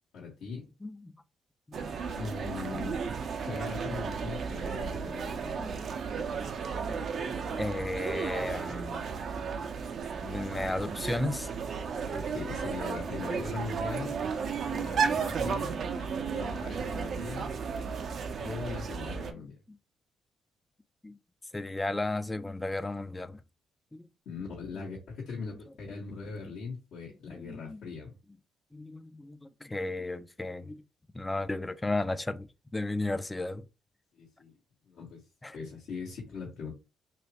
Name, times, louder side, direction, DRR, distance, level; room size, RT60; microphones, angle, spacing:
voice 1, 0.1-0.7 2.1-3.0 3.4-5.7 12.1-14.2 14.7-15.8 16.3-17.5 18.4-19.6 24.2-28.1 34.1-34.5 34.8-35.2 35.5-36.7, left 4 dB, 75° left, 1.5 m, -40 dB
voice 2, 0.8-1.1 1.7-2.0 4.7-5.2 5.6-5.9 6.3-9.1 10.2-11.5 21.0-21.2 21.5-23.4 23.9-24.1 24.8-24.9 25.4-25.5 27.3-27.8 28.7-30.8 31.1-32.5 32.7-33.6 35.4-35.6, left 2 dB, 20° left, 0.4 m, -35 dB
sound 1, 1.7-19.3, right 6 dB, 60° right, 0.6 m, -34 dB
3.1 x 3.0 x 2.9 m
supercardioid pair, 55°, 0 cm